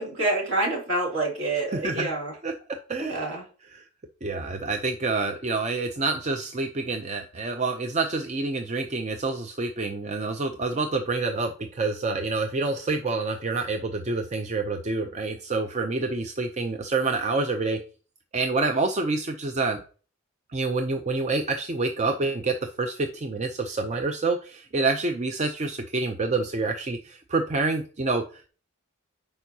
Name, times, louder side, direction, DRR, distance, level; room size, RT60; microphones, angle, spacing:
voice 1, 0.0-2.3 3.0-3.4, right 2 dB, 65° right, -2 dB, 2.7 m, -27 dB
voice 2, 1.7-2.1 2.4-2.5 2.9-3.3 3.7-3.8 4.2-17.8 18.3-19.8 20.5-28.5, right 3 dB, 30° right, 5 dB, 0.5 m, -27 dB
10.5 x 4.5 x 2.8 m, 0.38 s
head